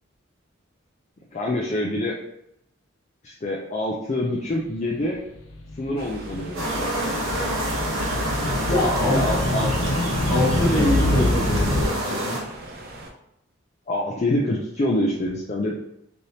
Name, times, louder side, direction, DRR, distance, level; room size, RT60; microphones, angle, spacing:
voice 1, 1.3-2.1 3.2-5.2 5.8-6.9 9.0-9.7 10.8-10.9 13.9-15.7, left 1 dB, 35° left, -2 dB, 0.4 m, -26 dB
sound 1, 5.3-11.9, left 1 dB, 85° left, 0.5 m, -26 dB
sound 2, 6.0-13.1, right 2 dB, 50° right, 0.5 m, -41 dB
sound 3, 6.5-12.4, right 1 dB, 90° right, 0.9 m, -28 dB
voice 2, 8.7-9.2 10.3-12.4, left 1 dB, 15° left, -7 dB, 1.1 m, -24 dB
3.3 x 2.7 x 2.7 m, 0.82 s
head